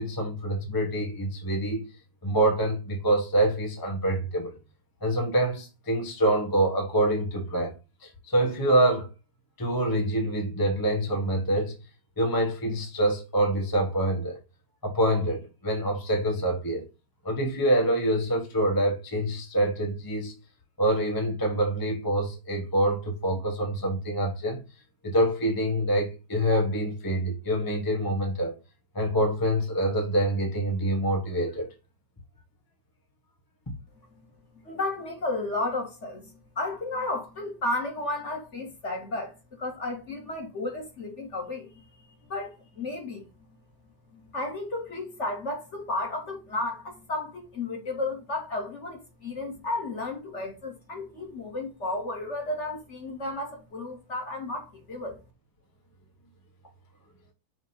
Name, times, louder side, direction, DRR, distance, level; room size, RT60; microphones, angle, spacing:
voice 1, 0.0-1.9 2.2-4.5 5.0-7.7 8.0-9.1 9.6-11.7 12.2-14.4 14.8-16.8 17.2-20.3 20.8-24.6 25.0-28.6 28.9-31.7, right 1 dB, 20° left, 0.6 m, -26 dB
voice 2, 34.6-36.3 36.6-41.7 42.3-42.5 42.8-43.2 44.1-55.2, left 2 dB, 35° left, 1.8 m, -33 dB
6.0 x 2.8 x 5.5 m
omnidirectional pair, 2.3 m